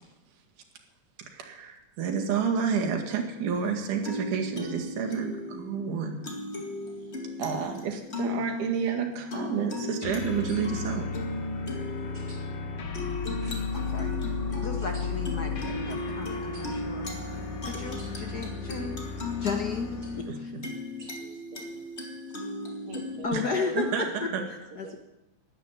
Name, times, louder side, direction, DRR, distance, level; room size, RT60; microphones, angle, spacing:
voice 1, 1.3-6.2 7.4-11.1 20.3-20.4 23.3-23.5 23.7-24.4, right 6 dB, 75° right, 2 dB, 3.2 m, -30 dB
sound 1, 3.5-23.2, left 2 dB, 25° left, 1.9 m, -36 dB
voice 2, 4.0-4.4 6.7-6.8 7.2-7.4 21.0-21.9 22.9-25.0, right 5 dB, 55° right, 3 dB, 3.1 m, -44 dB
sound 2, 10.0-20.3, left 5 dB, 50° left, 2.2 m, -35 dB
sound 3, 10.5-10.9 12.1-12.4 13.4-13.8 14.8-15.0 16.5-16.9 17.9-18.1 20.0-20.3 21.0-21.1, equal, 25° right, 6.0 m, -51 dB
voice 3, 13.7-14.2 14.6-17.1 17.6-19.0 19.3-20.5 23.2-24.3 24.8-25.0, left 5 dB, 70° left, 4 dB, 0.9 m, -34 dB
12.5 x 10.5 x 9.0 m, 0.91 s
omnidirectional pair, 3.7 m